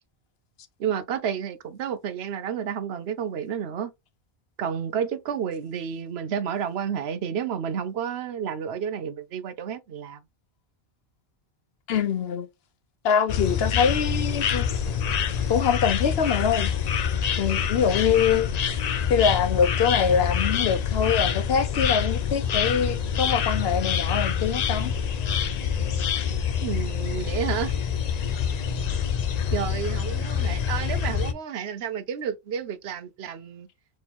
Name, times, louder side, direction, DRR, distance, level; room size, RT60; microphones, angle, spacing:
voice 1, 0.8-3.9 4.6-10.2 26.6-27.7 29.5-33.7, right 8 dB, 80° right, 0.9 m, -30 dB
voice 2, 11.9-12.5 13.0-14.7 15.5-16.7 17.4-18.5 19.1-24.9, left 7 dB, 70° left, 1.0 m, -24 dB
sound 1, 13.3-31.3, left 7 dB, 50° left, 0.5 m, -26 dB
4.3 x 3.1 x 3.5 m
omnidirectional pair, 1.1 m